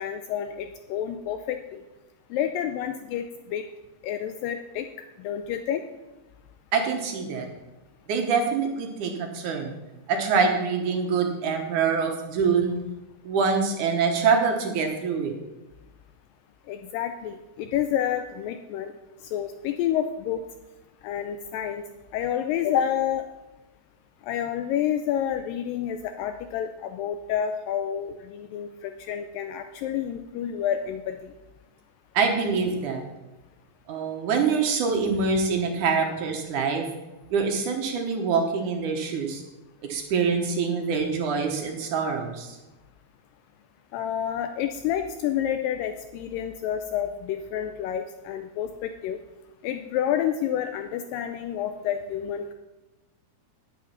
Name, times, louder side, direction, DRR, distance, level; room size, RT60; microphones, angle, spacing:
voice 1, 0.0-1.8 2.3-3.6 4.0-4.9 5.2-5.8 16.7-18.9 19.3-20.4 21.0-21.8 22.1-23.2 24.2-31.2 43.9-49.2 49.6-52.5, left 10 dB, 80° left, 8 dB, 2.1 m, -29 dB
voice 2, 6.7-7.5 8.1-9.8 10.1-12.8 13.2-15.4 32.1-33.0 33.9-36.9 37.3-39.4 39.9-42.6, right 5 dB, 65° right, 3 dB, 2.4 m, -25 dB
10.5 x 9.2 x 5.7 m, 1.1 s
omnidirectional pair, 4.2 m